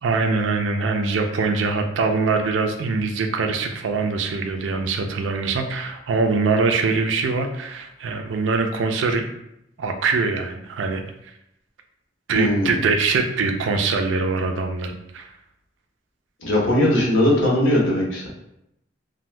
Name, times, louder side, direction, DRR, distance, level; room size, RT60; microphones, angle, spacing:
voice 1, 0.0-9.3 9.8-11.0 12.3-15.3 16.7-16.8, right 4 dB, 90° right, 5 dB, 0.4 m, -23 dB
voice 2, 12.3-12.8 16.4-18.3, left 1 dB, 85° left, -3 dB, 0.8 m, -19 dB
2.6 x 2.2 x 3.2 m, 0.82 s
head